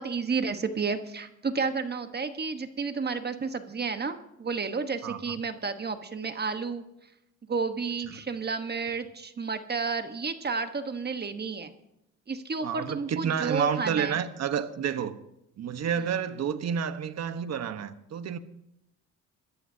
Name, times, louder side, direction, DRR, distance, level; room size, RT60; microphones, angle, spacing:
voice 1, 0.0-6.8 7.5-11.7 12.3-14.2, right 4 dB, 35° right, 8 dB, 1.2 m, -31 dB
voice 2, 5.0-5.3 12.6-15.2 15.6-18.4, right 8 dB, 60° right, 10 dB, 1.2 m, -30 dB
25.0 x 14.0 x 2.8 m, 0.83 s
cardioid pair, 90°, 30 cm